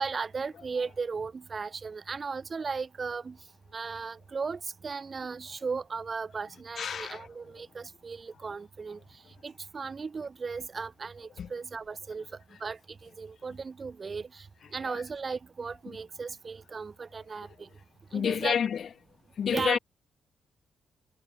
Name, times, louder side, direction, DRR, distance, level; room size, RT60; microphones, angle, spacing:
voice 1, 0.0-3.4 3.7-17.7 18.1-18.6 19.4-19.8, right 5 dB, 30° right, 0.6 m, -36 dB
voice 2, 6.8-7.3 11.4-11.5 18.1-18.9 19.4-19.8, left 8 dB, 55° left, 0.4 m, -28 dB
cardioid pair, 130°, 0 cm